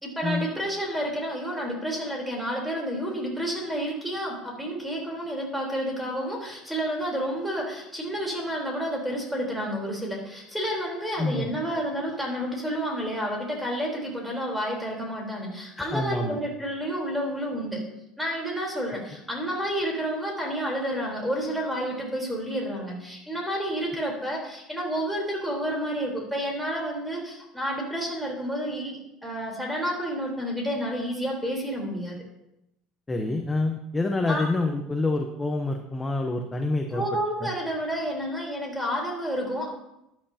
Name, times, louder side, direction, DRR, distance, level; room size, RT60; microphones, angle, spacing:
voice 1, 0.0-17.8 18.2-32.2 34.3-34.4 36.9-39.7, equal, ahead, -1 dB, 3.9 m, -30 dB
voice 2, 11.2-11.5 15.8-16.4 33.1-37.0 37.4-37.5, left 2 dB, 15° left, 4 dB, 0.9 m, -27 dB
13.0 x 11.0 x 2.9 m, 0.85 s
cardioid pair, 130°, 0 cm